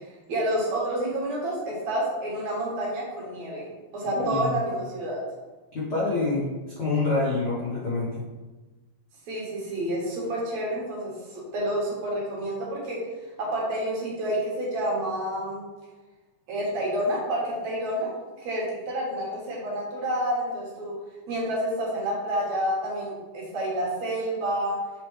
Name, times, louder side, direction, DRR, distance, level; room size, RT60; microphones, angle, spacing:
voice 1, 0.3-5.2 9.3-13.0 13.4-15.6 16.5-18.1 18.4-20.9 21.3-24.8, right 1 dB, 65° right, -4 dB, 2.6 m, -29 dB
voice 2, 4.1-4.6 5.7-8.2, left 3 dB, 65° left, -7 dB, 1.0 m, -27 dB
7.0 x 4.4 x 3.3 m, 1.2 s
omnidirectional pair, 3.6 m